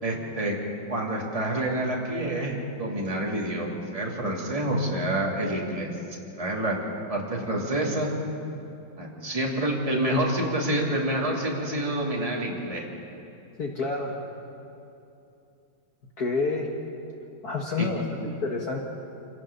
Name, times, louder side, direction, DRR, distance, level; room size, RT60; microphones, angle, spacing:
voice 1, 0.0-0.5 0.9-5.9 6.4-6.8 7.1-8.1 9.0-12.9 17.8-17.9, right 1 dB, 15° right, -3 dB, 2.9 m, -28 dB
voice 2, 13.6-14.2 16.2-16.7 17.4-18.8, left 4 dB, 50° left, 0 dB, 1.9 m, -28 dB
26.0 x 17.5 x 7.0 m, 2.7 s
omnidirectional pair, 2.2 m